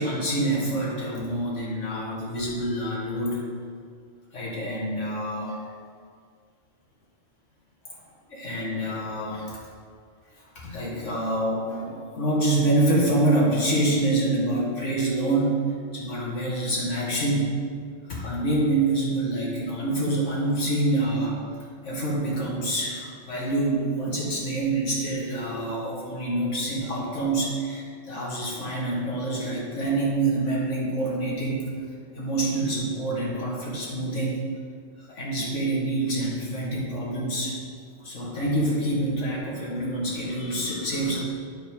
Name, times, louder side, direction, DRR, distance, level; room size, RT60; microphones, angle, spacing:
voice 1, 0.0-3.4 4.3-5.6 8.3-9.6 10.6-15.6 15.9-17.5 18.1-21.3 21.8-31.6 32.1-34.4 35.1-37.6 38.0-41.2, right 1 dB, 75° left, -5 dB, 2.3 m, -26 dB
8.9 x 7.1 x 5.1 m, 2.1 s
omnidirectional pair, 1.3 m